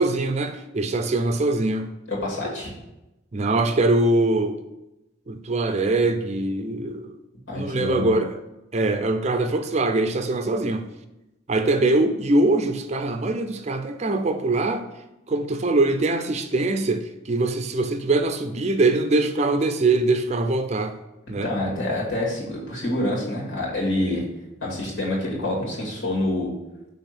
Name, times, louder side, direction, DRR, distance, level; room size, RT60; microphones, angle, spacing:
voice 1, 0.0-1.9 3.3-4.6 5.3-7.1 7.5-8.4 8.7-10.9 11.5-14.9 15.3-21.0 21.3-21.5 24.1-24.2, right 2 dB, 35° right, 0.4 m, -23 dB
voice 2, 2.1-2.7 7.5-8.1 21.4-24.2 24.6-26.5, left 1 dB, 75° left, 2.4 m, -27 dB
6.0 x 3.5 x 6.0 m
head